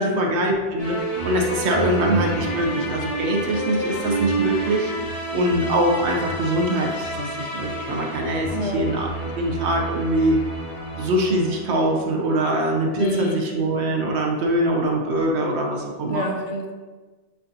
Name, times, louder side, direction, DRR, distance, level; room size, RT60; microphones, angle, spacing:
voice 1, 0.0-4.9 5.3-10.4 11.0-16.3, right 1 dB, 70° right, 1 dB, 1.0 m, -23 dB
sound 1, 0.8-12.1, right 2 dB, 35° left, 0.8 m, -29 dB
voice 2, 8.5-8.9 12.9-13.4 16.1-16.7, equal, 90° left, 1 dB, 1.0 m, -27 dB
6.6 x 2.5 x 2.6 m, 1.3 s
omnidirectional pair, 1.2 m